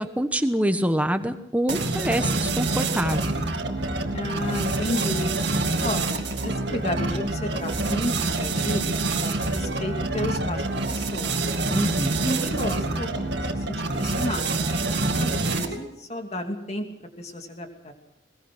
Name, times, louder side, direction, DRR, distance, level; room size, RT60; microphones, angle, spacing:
voice 1, 0.0-3.3 11.7-12.2, equal, 10° right, 8 dB, 1.1 m, -25 dB
sound 1, 1.7-15.9, right 2 dB, 65° right, 2.2 m, -26 dB
voice 2, 4.1-5.3 5.8-8.8 9.2-11.4 12.2-14.5 15.1-16.9 17.2-17.9, left 1 dB, 35° left, 4 dB, 2.6 m, -32 dB
21.0 x 20.5 x 6.1 m, 0.83 s
head